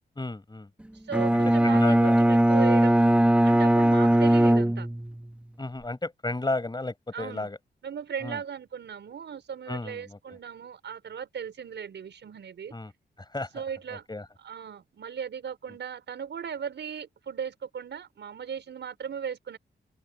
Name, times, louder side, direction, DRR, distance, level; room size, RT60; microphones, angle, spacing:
voice 1, 0.2-0.7 1.3-2.2 5.6-7.6 8.2-8.4 9.7-10.2 12.7-12.9 13.3-13.5 14.1-14.2, left 2 dB, 25° left, 6.2 m, -33 dB
Bowed string instrument, 1.1-5.3, right 1 dB, 5° right, 1.2 m, -20 dB
voice 2, 1.1-4.9 7.1-7.5 7.8-12.7 13.5-14.1 14.4-19.6, right 7 dB, 85° right, 5.7 m, -37 dB
open air
cardioid pair, 75°, 18 cm